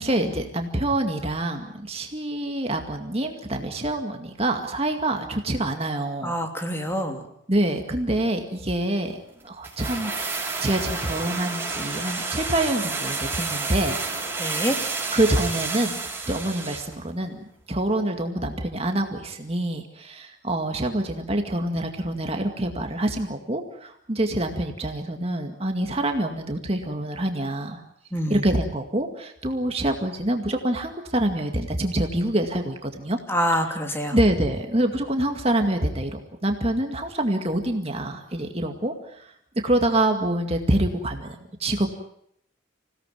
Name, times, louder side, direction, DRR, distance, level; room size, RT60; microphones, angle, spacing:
voice 1, 0.0-6.4 7.5-14.0 15.1-16.0 16.3-27.8 28.3-33.2 34.1-39.3 39.6-41.9, right 1 dB, 30° right, 4 dB, 2.1 m, -26 dB
voice 2, 6.2-7.2 14.4-14.7 28.1-28.4 33.3-34.2, equal, 10° left, 4 dB, 3.0 m, -26 dB
sound 1, 9.6-16.9 17.2-17.3, right 4 dB, 10° right, 6.3 m, -30 dB
27.0 x 17.5 x 9.3 m, 0.72 s
head